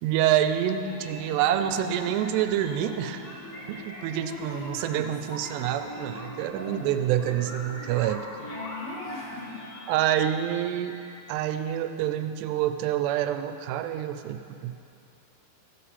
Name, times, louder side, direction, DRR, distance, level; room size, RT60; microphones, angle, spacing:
voice 1, 0.0-3.2 3.7-8.3 9.9-11.0 11.3-14.7, right 11 dB, 90° right, 9 dB, 2.7 m, -27 dB
sound 1, 0.8-11.4, equal, 25° left, 1.6 m, -41 dB
voice 2, 4.1-5.1 6.6-6.9 8.4-9.6, left 4 dB, 75° left, -4 dB, 3.5 m, -40 dB
15.0 x 7.5 x 4.1 m, 2.6 s
omnidirectional pair, 4.7 m